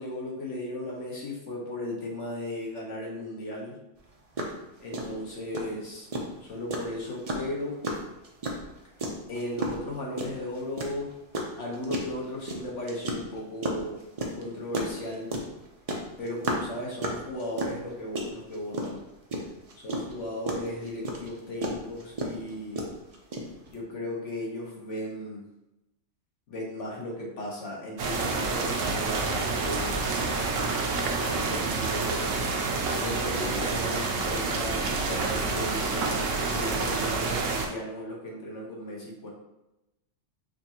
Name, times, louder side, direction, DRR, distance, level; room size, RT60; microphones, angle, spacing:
voice 1, 0.0-3.8 4.8-6.1 6.4-7.8 9.3-11.1 11.6-14.0 14.3-15.3 16.2-19.0 19.8-22.8 23.7-25.4 26.5-30.6 31.2-32.4 32.9-36.2 36.5-39.3, left 1 dB, 70° left, -3 dB, 1.3 m, -36 dB
sound 1, 4.0-4.1 4.4-4.6 4.9-23.7, right 1 dB, 45° right, 0.5 m, -32 dB
sound 2, 28.0-37.7, right 3 dB, 85° right, 1.0 m, -28 dB
5.0 x 2.6 x 2.8 m, 0.95 s
omnidirectional pair, 1.3 m